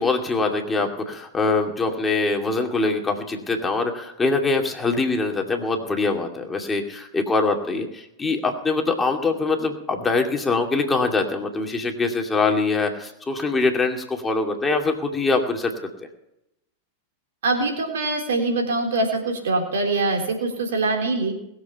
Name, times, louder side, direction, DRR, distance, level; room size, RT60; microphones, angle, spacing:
voice 1, 0.0-15.7, left 3 dB, 15° left, 3 dB, 2.4 m, -23 dB
voice 2, 17.4-21.3, right 2 dB, 70° right, 2 dB, 3.6 m, -23 dB
21.0 x 7.7 x 5.8 m, 0.82 s
hypercardioid pair, 95°, 0 cm